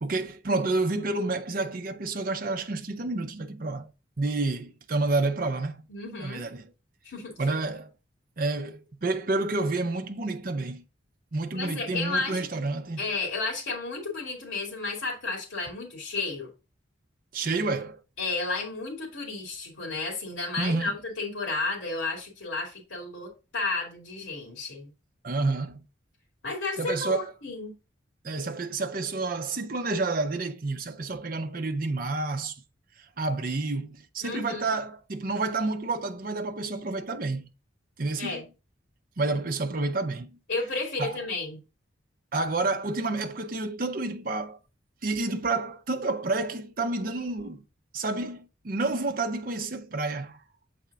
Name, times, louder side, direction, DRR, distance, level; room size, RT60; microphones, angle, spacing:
voice 1, 0.0-3.9 4.2-5.9 6.2-6.6 7.4-7.9 8.4-10.8 11.3-13.0 17.3-18.0 20.6-20.9 25.2-25.8 26.8-27.3 28.2-32.6 33.2-37.5 38.0-38.4 39.2-40.3 41.0-41.2 42.3-44.6 45.0-47.6 47.9-50.4, right 3 dB, 45° right, 0.6 m, -29 dB
voice 2, 5.9-6.4 7.0-7.3 11.5-12.5 13.0-16.5 18.2-24.9 26.4-27.7 34.2-34.7 38.2-38.4 40.5-41.6, left 3 dB, 80° left, 2.6 m, -32 dB
7.1 x 4.2 x 3.6 m
head